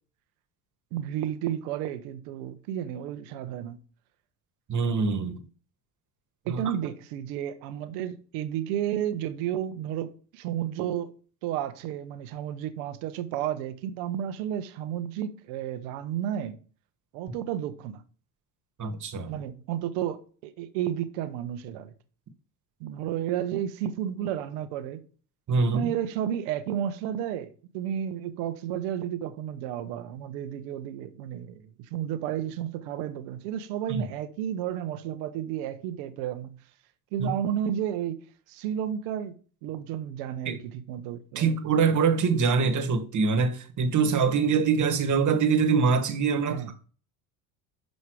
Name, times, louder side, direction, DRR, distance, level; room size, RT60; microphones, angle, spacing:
voice 1, 0.9-3.8 6.5-11.1 11.4-16.6 17.1-18.0 19.3-21.9 22.8-25.0 25.7-36.6 37.1-39.3 39.6-41.6 46.4-46.7, right 10 dB, 75° right, 1.1 m, -32 dB
voice 2, 4.7-5.4 6.4-6.6 18.8-19.3 25.5-25.9 33.9-34.0 37.2-37.3 40.4-40.6 41.3-46.6, right 5 dB, 40° right, 1.6 m, -24 dB
6.4 x 5.3 x 4.7 m
hypercardioid pair, 75°, 46 cm